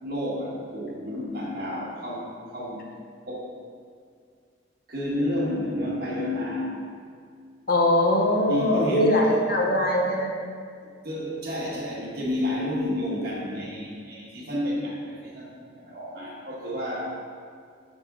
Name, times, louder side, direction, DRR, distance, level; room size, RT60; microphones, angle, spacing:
voice 1, 0.0-2.9 3.3-3.6 4.9-6.7 8.5-9.5 10.8-17.2, left 1 dB, 50° right, -5 dB, 1.4 m, -30 dB
voice 2, 7.7-10.3, left 1 dB, 50° left, -1 dB, 0.8 m, -21 dB
6.7 x 5.1 x 3.6 m, 2.2 s
head